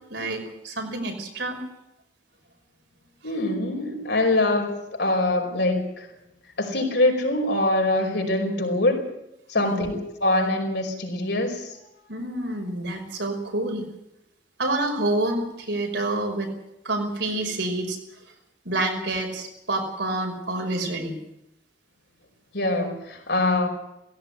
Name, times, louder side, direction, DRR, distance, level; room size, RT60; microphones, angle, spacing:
voice 1, 0.1-1.6 9.6-9.9 12.1-13.9 14.6-16.5 16.8-18.0 18.7-21.1, right 2 dB, 65° right, 2 dB, 5.5 m, -28 dB
voice 2, 3.2-6.1 6.6-9.1 9.5-11.7 22.5-23.7, left 2 dB, 60° left, 1 dB, 5.4 m, -24 dB
17.5 x 17.0 x 9.9 m, 0.85 s
head